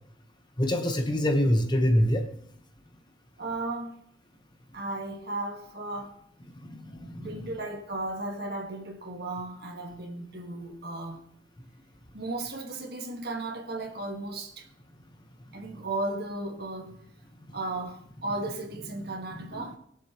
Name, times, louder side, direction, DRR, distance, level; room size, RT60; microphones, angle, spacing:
voice 1, 0.6-2.5 6.5-7.4 19.4-19.7, equal, 25° left, 1.0 m, -26 dB
voice 2, 3.4-4.0 4.7-6.2 7.2-11.2 12.1-14.7 15.5-16.9 17.5-19.8, right 2 dB, 55° right, 1.6 m, -35 dB
22.0 x 7.5 x 3.0 m
head